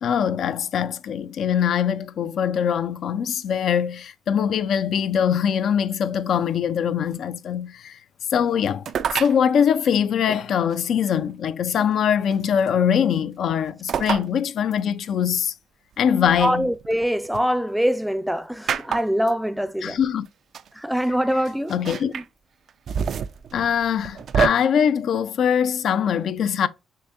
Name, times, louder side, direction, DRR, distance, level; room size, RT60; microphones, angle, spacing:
voice 1, 0.0-8.0 8.3-8.9 9.1-15.5 16.0-16.7 19.8-20.3 21.7-22.1 23.5-26.7, left 8 dB, 65° left, 0.4 m, -22 dB
sound 1, 8.9-9.4 10.7-10.8 12.3-12.7 13.9-14.3 14.7-14.8 16.2-17.4 18.7-19.3 20.3-20.4 20.5-20.7 21.7-22.3 22.7-24.5, right 7 dB, 60° right, 0.4 m, -27 dB
voice 2, 16.4-20.0 20.8-21.7 22.1-22.2, equal, 5° right, 0.5 m, -23 dB
6.6 x 2.7 x 2.5 m
cardioid pair, 90°, 0 cm